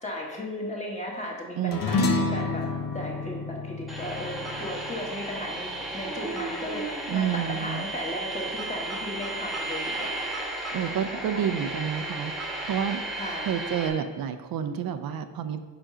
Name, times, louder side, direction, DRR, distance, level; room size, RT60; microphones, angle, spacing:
voice 1, 0.0-2.6 2.9-10.3 11.1-12.0 13.1-13.5, left 1 dB, 20° left, -2 dB, 1.4 m, -36 dB
voice 2, 1.6-2.1 7.1-7.8 10.7-12.3 12.6-13.0 13.5-15.6, right 8 dB, 75° right, 9 dB, 0.5 m, -29 dB
sound 1, 1.7-6.4, left 3 dB, 65° left, 0.8 m, -30 dB
sound 2, 3.9-13.9, right 2 dB, ahead, 1.2 m, -34 dB
Dog, 6.0-7.9 8.5-9.3 11.6-12.4, right 4 dB, 45° right, 1.0 m, -41 dB
5.1 x 5.0 x 4.9 m, 1.4 s
cardioid pair, 115°, 35 cm